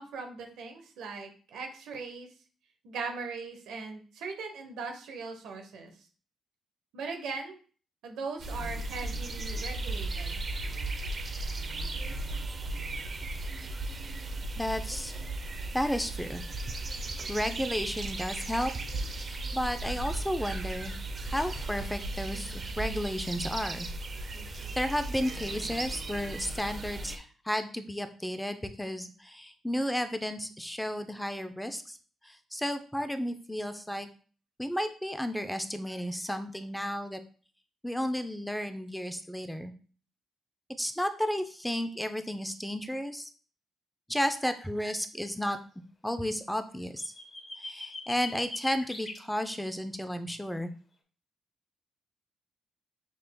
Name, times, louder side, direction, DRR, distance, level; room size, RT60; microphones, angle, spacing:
voice 1, 0.0-2.3 2.8-5.9 6.9-7.6 8.0-10.4, right 4 dB, 80° right, 4 dB, 1.0 m, -39 dB
sound 1, 8.4-27.2, right 2 dB, 45° right, 0.7 m, -36 dB
voice 2, 14.6-15.2 15.7-16.4 17.3-18.7 19.1-20.9 21.3-23.9 24.5-32.0 32.2-34.1 34.6-37.2 37.8-39.7 40.8-43.3 44.1-45.6 46.0-47.1 47.6-50.7, equal, 5° left, 9 dB, 0.6 m, -33 dB
sound 2, 46.8-49.2, left 3 dB, 35° left, 1.1 m, -41 dB
6.0 x 3.2 x 2.2 m, 0.40 s
supercardioid pair, 60°, 0 cm